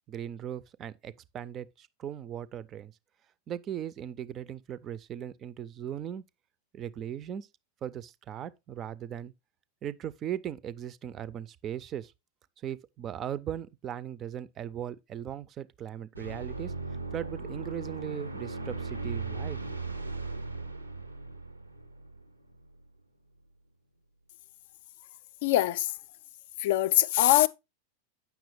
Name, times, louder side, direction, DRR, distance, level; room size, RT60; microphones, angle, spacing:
voice 1, 0.1-2.9 3.5-6.2 6.7-7.5 7.8-9.3 9.8-12.1 12.6-16.7 17.1-19.7, right 10 dB, 30° right, 0.4 m, -38 dB
sound 1, 16.1-22.8, right 3 dB, 85° right, 0.6 m, -37 dB
voice 2, 25.4-25.9 26.6-27.5, left 14 dB, 55° left, 0.4 m, -23 dB
8.2 x 6.0 x 3.1 m
figure-of-eight pair, 90°, 0 cm